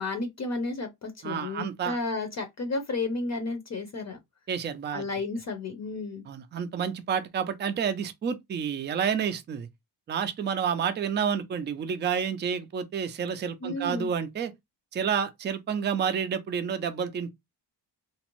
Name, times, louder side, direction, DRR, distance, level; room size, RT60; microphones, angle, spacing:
voice 1, 0.0-4.2 4.9-6.2 13.6-14.1, left 3 dB, 40° left, 0.6 m, -32 dB
voice 2, 1.2-2.0 4.5-5.0 6.3-9.7 10.1-14.5 14.9-17.3, right 7 dB, 25° right, 0.4 m, -29 dB
2.6 x 2.0 x 2.9 m
cardioid pair, 105°, 43 cm